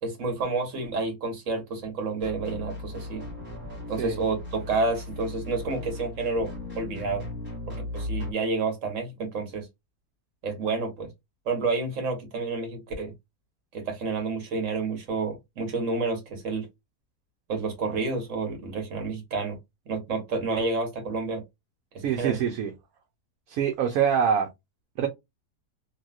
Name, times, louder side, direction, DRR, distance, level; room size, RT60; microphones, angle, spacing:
voice 1, 0.0-3.2 3.9-7.2 7.7-9.7 10.4-11.1 11.4-13.1 13.7-16.7 17.5-19.6 19.9-21.4 21.9-22.4, right 3 dB, 55° right, 1.5 m, -29 dB
sound 1, 2.2-8.3, left 2 dB, 10° left, 1.4 m, -37 dB
voice 2, 22.0-22.7 23.5-24.5 25.0-25.1, right 8 dB, 70° right, 1.1 m, -24 dB
3.1 x 2.7 x 2.3 m
omnidirectional pair, 1.7 m